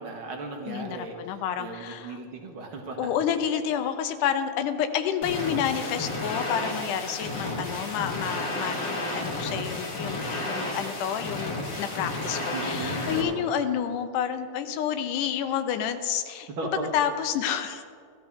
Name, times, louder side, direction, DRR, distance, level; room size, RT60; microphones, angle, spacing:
voice 1, 0.0-3.1 7.4-7.8 12.5-13.6 16.5-16.9, right 3 dB, 50° right, 2 dB, 1.8 m, -37 dB
voice 2, 0.7-2.2 3.0-16.5 16.9-17.8, left 8 dB, 85° left, 8 dB, 2.2 m, -29 dB
sound 1, 5.2-13.2, left 2 dB, 40° left, 1.9 m, -32 dB
16.0 x 13.5 x 3.6 m, 2.2 s
omnidirectional pair, 3.6 m